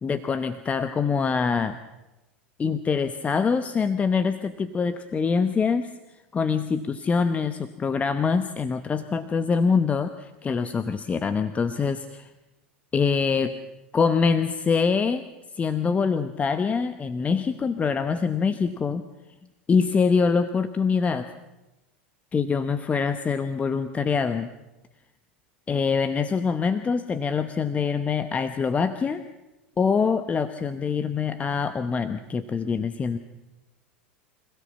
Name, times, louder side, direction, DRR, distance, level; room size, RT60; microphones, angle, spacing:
voice 1, 0.0-1.8 2.6-5.9 6.3-12.3 12.9-13.5 13.9-15.2 15.6-19.0 19.7-21.3 22.3-24.5 25.7-29.2 29.8-33.2, left 5 dB, 20° left, 11 dB, 1.0 m, -24 dB
26.0 x 16.5 x 7.1 m, 1.0 s
hypercardioid pair, 85°, 6 cm